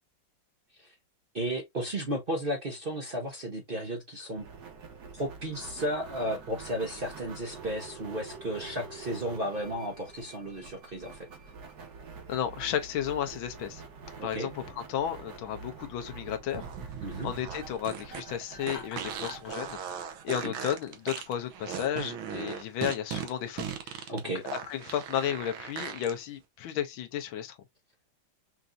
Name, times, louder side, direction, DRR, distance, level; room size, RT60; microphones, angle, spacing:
voice 1, 1.3-4.5 5.1-11.3 14.2-14.5 17.0-17.3 20.4-20.5 24.1-24.4, right 1 dB, 40° right, 0.8 m, -34 dB
sound 1, 4.4-20.9, right 4 dB, 55° right, 1.5 m, -46 dB
voice 2, 12.3-13.8 14.2-16.7 17.2-24.1 24.4-27.6, left 10 dB, 80° left, 1.5 m, -33 dB
sound 2, 16.5-26.1, right 8 dB, 85° right, 1.6 m, -38 dB
Laughter, 18.6-19.5, left 4 dB, 50° left, 1.5 m, -44 dB
5.8 x 2.5 x 2.6 m
omnidirectional pair, 2.2 m